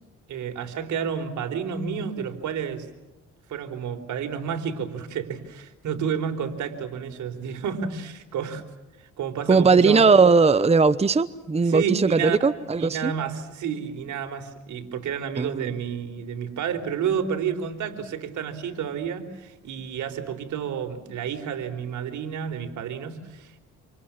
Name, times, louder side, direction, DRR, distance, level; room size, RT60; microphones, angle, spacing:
voice 1, 0.3-2.9 3.5-8.6 9.2-10.0 11.6-12.5 12.8-23.6, right 7 dB, 75° right, 4.2 m, -30 dB
voice 2, 9.5-13.1 15.4-15.5, right 4 dB, 20° right, 0.9 m, -18 dB
28.0 x 28.0 x 7.4 m
cardioid pair, 90°, 30 cm